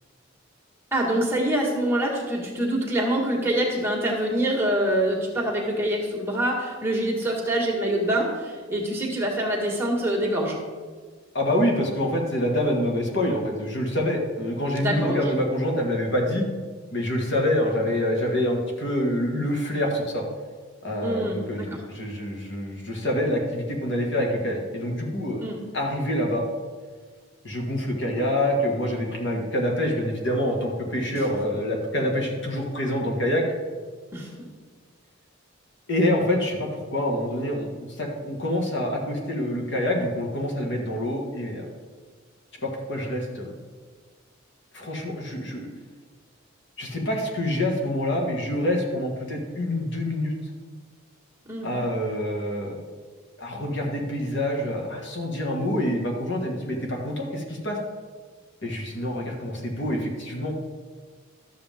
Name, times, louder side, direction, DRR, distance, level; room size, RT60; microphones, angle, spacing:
voice 1, 0.9-10.6 14.8-15.2 21.0-21.6 25.4-25.6 34.1-34.3 51.5-51.7, right 1 dB, 10° right, -3 dB, 1.7 m, -25 dB
voice 2, 11.3-16.5 16.9-20.2 20.8-25.4 25.7-26.4 27.4-33.4 35.9-41.7 42.6-43.5 44.7-45.7 46.8-50.3 51.6-52.8 53.4-57.8 58.6-60.5, left 1 dB, 60° left, 1 dB, 1.7 m, -26 dB
12.5 x 7.5 x 3.6 m, 1.6 s
head